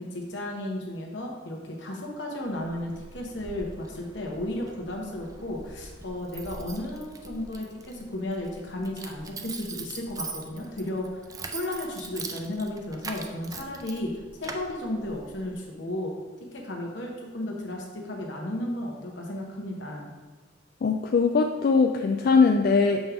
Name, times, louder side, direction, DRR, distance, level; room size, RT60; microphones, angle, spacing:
voice 1, 0.0-11.2 11.5-14.1 14.4-16.1 16.4-20.1, left 1 dB, 75° left, 0 dB, 1.2 m, -34 dB
Keys jangling, 2.4-15.5, right 4 dB, 20° right, 0.4 m, -42 dB
voice 2, 20.8-23.0, left 4 dB, 55° left, 4 dB, 0.3 m, -21 dB
6.1 x 5.2 x 3.5 m, 1.3 s
head